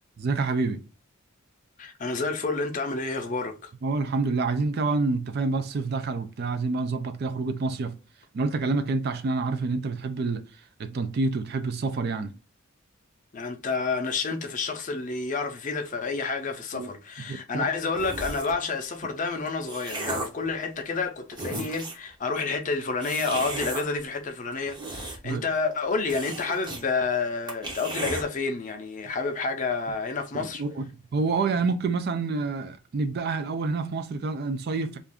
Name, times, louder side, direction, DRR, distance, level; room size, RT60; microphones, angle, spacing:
voice 1, 0.2-0.8 3.8-8.0 8.3-10.5 10.8-12.3 16.7-16.9 17.3-17.6 25.2-25.4 30.3-35.0, right 3 dB, 50° right, 0.3 m, -28 dB
voice 2, 1.8-3.7 13.3-30.6, left 4 dB, 35° left, 0.5 m, -29 dB
sound 1, 18.0-18.6 19.3-20.4 21.0-21.1 21.3-22.1 23.0-23.8 24.5-25.4 25.7-25.8 26.1-26.8 27.1-27.2 27.5-28.2, right 2 dB, 20° right, 0.7 m, -34 dB
2.5 x 2.4 x 3.4 m
head